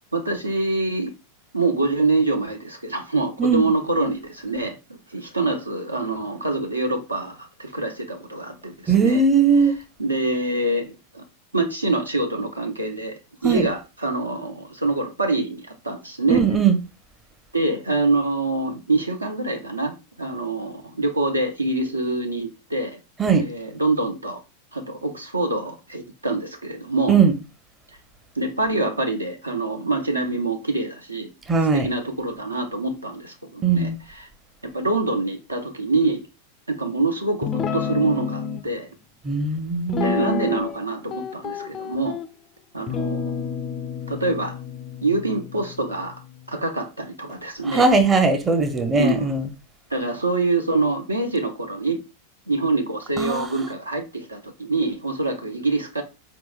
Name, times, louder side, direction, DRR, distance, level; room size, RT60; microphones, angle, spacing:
voice 1, 0.1-1.1 1.5-4.8 5.1-9.2 10.0-11.3 11.5-16.4 17.5-23.0 23.3-24.4 24.7-27.1 28.4-31.3 31.7-34.3 34.7-36.2 36.7-38.9 40.0-42.2 42.7-43.5 44.1-44.6 45.0-46.2 46.5-47.9 49.0-49.3 49.9-52.0 52.5-56.0, right 2 dB, 85° right, 0.7 m, -25 dB
voice 2, 3.4-3.7 8.9-9.7 13.4-13.7 16.3-16.8 23.2-23.4 27.1-27.3 31.5-31.9 33.6-33.9 39.2-40.6 47.6-49.5 53.2-53.5, right 5 dB, 20° right, 0.6 m, -19 dB
Guitar, 37.4-38.6 39.9-40.8 41.1-42.3 42.9-46.3, left 6 dB, 25° left, 0.3 m, -29 dB
4.5 x 2.8 x 2.4 m
figure-of-eight pair, 90°, 0 cm